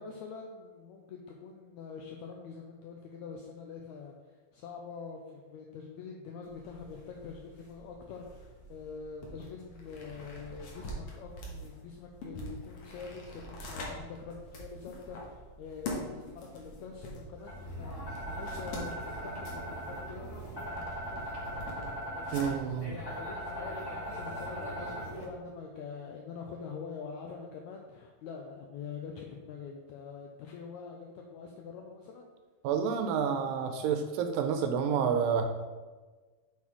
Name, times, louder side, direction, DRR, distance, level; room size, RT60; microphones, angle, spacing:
voice 1, 0.0-4.1 4.5-22.5 22.9-32.3, left 5 dB, 85° left, 1 dB, 1.6 m, -45 dB
sound 1, 6.4-22.8, left 1 dB, 60° left, 1.8 m, -45 dB
sound 2, 17.4-25.2, equal, 10° left, 1.7 m, -39 dB
voice 2, 22.3-23.0 32.6-35.5, right 7 dB, 85° right, 6 dB, 2.2 m, -29 dB
6.3 x 5.7 x 4.6 m, 1.3 s
omnidirectional pair, 3.9 m